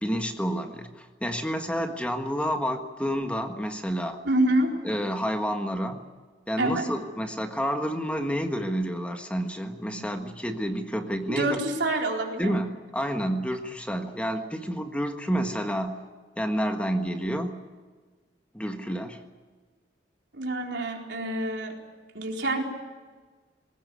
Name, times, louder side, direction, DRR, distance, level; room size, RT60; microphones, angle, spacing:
voice 1, 0.0-4.2 4.8-6.0 6.5-11.6 12.4-12.7 12.9-16.0 16.4-17.6 18.5-19.2, equal, 5° left, 5 dB, 1.5 m, -29 dB
voice 2, 4.2-4.8 6.6-6.9 9.9-10.0 11.3-12.6 20.3-21.7 22.1-22.7, right 1 dB, 75° right, 1 dB, 4.2 m, -27 dB
21.0 x 19.0 x 9.6 m, 1.4 s
head